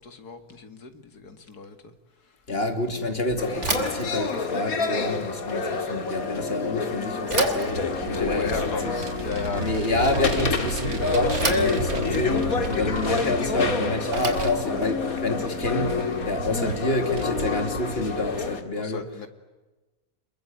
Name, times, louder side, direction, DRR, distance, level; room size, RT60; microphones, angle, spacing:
voice 1, 0.0-0.9 1.2-1.8 6.3-6.4 8.3-8.9 9.2-9.6 18.8-19.3, left 5 dB, 90° left, 2.7 m, -34 dB
voice 2, 2.5-7.8 8.0-9.0 9.6-16.0 16.2-19.2, left 2 dB, 40° left, 3.1 m, -28 dB
sound 1, 3.4-18.6, left 4 dB, 65° left, 2.5 m, -28 dB
Bicycle / Thump thud, 3.5-16.7, right 3 dB, 50° right, 3.2 m, -35 dB
Vehicle, 7.7-18.6, right 4 dB, 70° right, 2.2 m, -34 dB
28.5 x 22.0 x 9.3 m
omnidirectional pair, 1.6 m